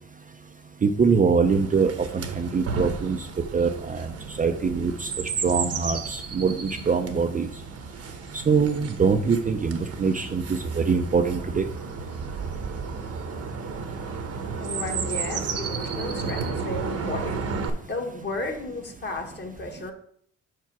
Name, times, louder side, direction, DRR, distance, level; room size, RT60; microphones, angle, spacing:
voice 1, 0.8-3.3 3.5-4.1 4.4-5.1 5.4-7.5 8.3-11.6, right 5 dB, 25° right, 6 dB, 0.5 m, -23 dB
Chirp tweet, 1.4-17.7, right 5 dB, 50° right, 1.0 m, -33 dB
voice 2, 14.6-17.5 17.9-19.9, left 2 dB, 35° left, 3 dB, 1.4 m, -34 dB
4.7 x 4.5 x 5.9 m, 0.65 s
cardioid pair, 90°, 30 cm